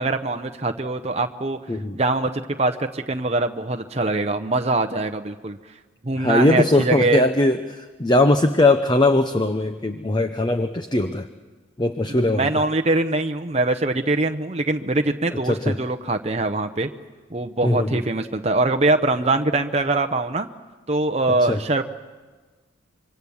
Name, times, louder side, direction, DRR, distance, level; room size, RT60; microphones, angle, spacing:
voice 1, 0.0-1.6 1.9-2.3 2.6-5.6 6.0-7.2 12.3-16.9 17.3-20.5 20.9-21.8, right 2 dB, 30° right, 5 dB, 0.8 m, -23 dB
voice 2, 1.7-2.0 6.2-11.3 11.8-12.5 15.4-15.8 17.6-18.0 21.4-21.6, left 2 dB, 20° left, 8 dB, 0.7 m, -20 dB
26.0 x 24.0 x 7.2 m, 1.4 s
head